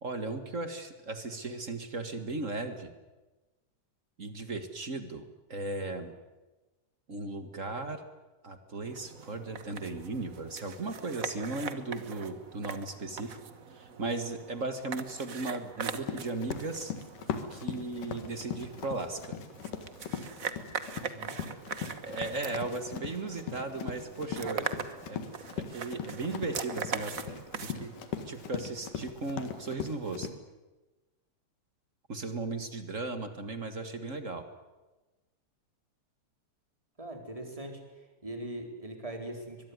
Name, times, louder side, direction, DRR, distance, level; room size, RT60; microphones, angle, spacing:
voice 1, 0.0-2.9 4.2-6.1 7.1-8.0 8.4-13.4 13.7-16.9 17.5-19.4 22.0-24.7 25.1-28.0 28.2-30.3 32.1-34.5, right 3 dB, 35° right, 9 dB, 1.4 m, -36 dB
sound 1, 8.8-28.7, right 6 dB, 70° right, 0.7 m, -42 dB
Run, 16.0-30.3, left 8 dB, 90° left, 3.4 m, -40 dB
voice 2, 21.1-21.5 37.0-37.8 38.2-39.7, right 1 dB, 10° right, 4 dB, 3.9 m, -41 dB
24.0 x 21.5 x 9.7 m, 1.2 s
omnidirectional pair, 3.6 m